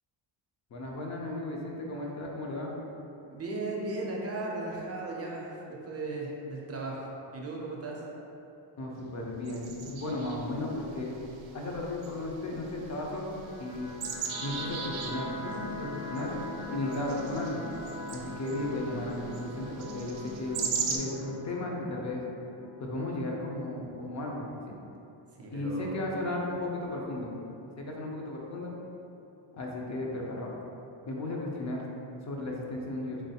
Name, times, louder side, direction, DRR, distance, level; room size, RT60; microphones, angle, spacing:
voice 1, 0.7-2.8 8.8-11.2 11.5-14.0 14.4-16.3 16.7-17.6 18.1-22.3 22.8-24.8 25.5-27.3 27.8-28.7 29.5-30.5 31.1-31.8 32.2-33.2, left 2 dB, 40° left, -1 dB, 0.4 m, -35 dB
voice 2, 3.3-8.0 25.3-26.3 26.6-26.7, right 2 dB, 35° right, -3 dB, 0.4 m, -37 dB
sound 1, 9.5-21.0, right 6 dB, 80° right, 0.6 m, -40 dB
sound 2, 13.4-24.3, left 1 dB, 65° left, 1.1 m, -42 dB
3.7 x 3.2 x 2.7 m, 2.9 s
wide cardioid pair, 175°, 46 cm